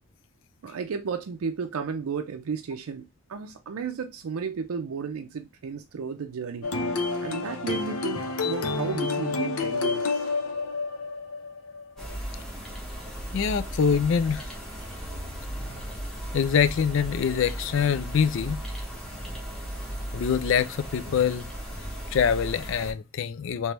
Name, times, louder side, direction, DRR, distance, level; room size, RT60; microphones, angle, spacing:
voice 1, 0.6-6.7 7.2-10.2, right 6 dB, 85° right, 0.4 m, -33 dB
sound 1, 6.6-12.1, left 4 dB, 90° left, 0.8 m, -29 dB
sound 2, 12.0-22.9, equal, ahead, 0.9 m, -36 dB
voice 2, 13.3-14.5 16.3-18.6 20.1-21.5 22.1-23.7, left 7 dB, 60° left, 0.3 m, -24 dB
3.3 x 3.0 x 3.0 m
head